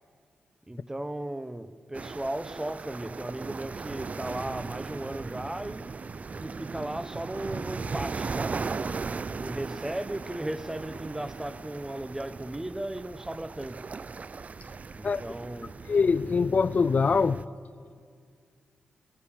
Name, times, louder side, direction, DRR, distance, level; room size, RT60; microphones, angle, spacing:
voice 1, 0.7-5.9 6.3-8.8 9.3-13.9 14.9-15.8, right 1 dB, 15° right, 0.9 m, -36 dB
sound 1, 1.9-17.4, right 4 dB, 45° right, 0.5 m, -38 dB
voice 2, 15.9-17.4, left 5 dB, 45° left, 0.4 m, -23 dB
20.5 x 18.0 x 7.2 m
cardioid pair, 70°, 3 cm